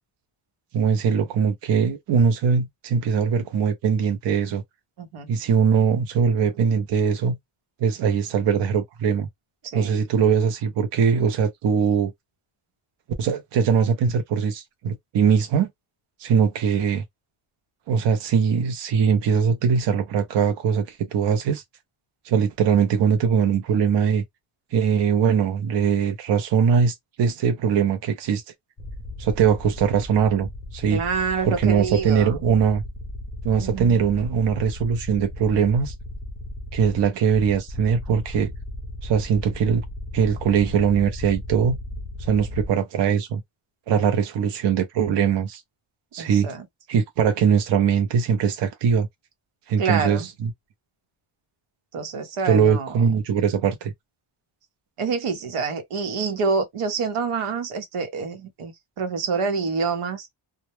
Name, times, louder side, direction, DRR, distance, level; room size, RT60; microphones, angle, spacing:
voice 1, 0.7-4.6 5.3-7.4 7.8-9.3 9.7-12.1 13.2-15.7 16.2-17.0 17.9-21.6 22.3-24.2 24.7-28.4 29.2-31.0 31.4-32.8 33.4-35.9 36.7-38.5 39.0-39.8 40.1-41.8 42.2-43.4 43.9-45.6 46.1-46.5 46.9-49.1 49.7-50.5 52.4-53.9, right 7 dB, 60° right, 0.5 m, -21 dB
voice 2, 5.0-5.3 9.6-10.0 30.9-32.4 33.6-34.0 46.2-46.6 49.8-50.3 51.9-53.0 55.0-60.3, right 5 dB, 85° right, 0.8 m, -27 dB
sound 1, 28.8-42.7, left 1 dB, 25° left, 0.5 m, -36 dB
2.1 x 2.1 x 3.0 m
wide cardioid pair, 175°, 50 cm